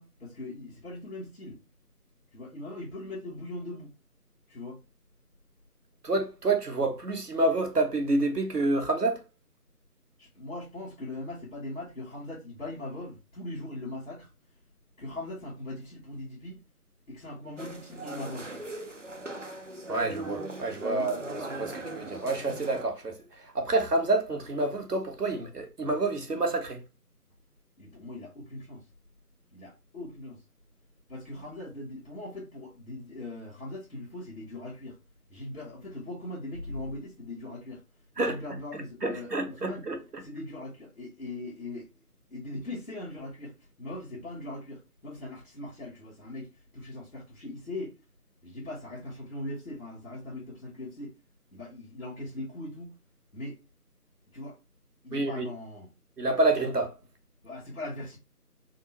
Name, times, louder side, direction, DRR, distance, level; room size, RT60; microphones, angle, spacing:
voice 1, 0.0-1.6 2.3-3.9 4.5-4.8 10.2-14.3 15.0-16.6 17.1-18.5 20.8-21.2 27.8-28.8 29.5-30.4 31.1-35.0 35.3-37.8 38.1-39.9 40.2-41.9 42.3-47.9 48.4-51.1 51.5-53.0 53.3-53.6 54.3-54.6 55.0-55.9 57.4-58.2, left 1 dB, 55° left, 1.5 m, -40 dB
voice 2, 6.0-9.2 19.9-21.2 21.6-26.8 38.2-38.4 39.0-40.2 55.1-55.5 56.2-56.9, right 2 dB, 75° right, 1.3 m, -28 dB
sound 1, 17.6-22.8, right 2 dB, 50° right, 0.6 m, -39 dB
3.6 x 2.2 x 4.2 m
figure-of-eight pair, 175°, 48 cm